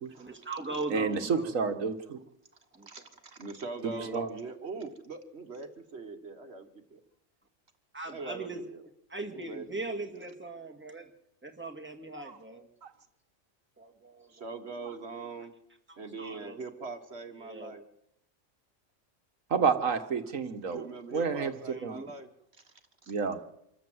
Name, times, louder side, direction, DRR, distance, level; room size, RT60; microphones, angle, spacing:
voice 1, 0.2-1.5 2.7-3.1 3.9-4.2 7.9-8.7 9.1-11.1 11.4-12.7 13.8-14.5 15.9-16.6 17.4-17.7 21.7-22.1, right 2 dB, 10° right, 2 dB, 2.2 m, -40 dB
voice 2, 0.9-2.2 3.8-4.3 12.2-12.4 12.8-12.9 19.5-20.9 21.1-21.5 21.8-22.0 23.1-23.4, right 5 dB, 85° right, 8 dB, 1.7 m, -30 dB
voice 3, 2.8-7.0 8.1-8.8 9.3-10.3 14.3-15.5 16.0-17.8 20.7-22.3 23.0-23.1, right 3 dB, 55° right, 7 dB, 1.8 m, -42 dB
25.5 x 13.5 x 7.8 m, 0.79 s
omnidirectional pair, 1.3 m